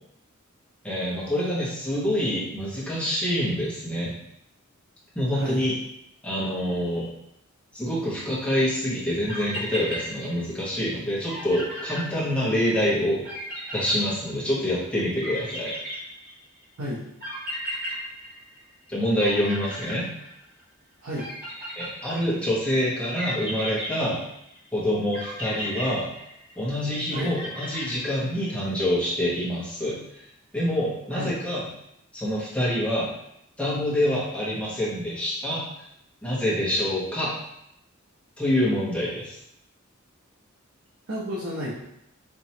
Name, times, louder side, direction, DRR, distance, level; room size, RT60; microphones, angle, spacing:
voice 1, 0.8-4.2 5.1-5.7 6.2-7.1 7.7-13.2 13.7-15.7 18.9-20.1 21.8-24.2 24.7-26.1 26.6-30.2 30.5-31.6 32.1-33.1 33.6-35.6 36.2-37.3 38.4-39.4, equal, 5° left, -8 dB, 1.2 m, -26 dB
sound 1, 9.3-10.6 10.9-11.0 11.3-12.7 13.2-14.7 15.2-16.6 17.2-18.9 19.2-20.6 21.2-22.4 23.2-24.6 25.1-26.7 27.1-28.3, equal, 45° right, 1.5 m, -35 dB
voice 2, 41.1-41.7, equal, 80° right, -6 dB, 0.8 m, -31 dB
4.5 x 2.9 x 2.8 m, 0.79 s
head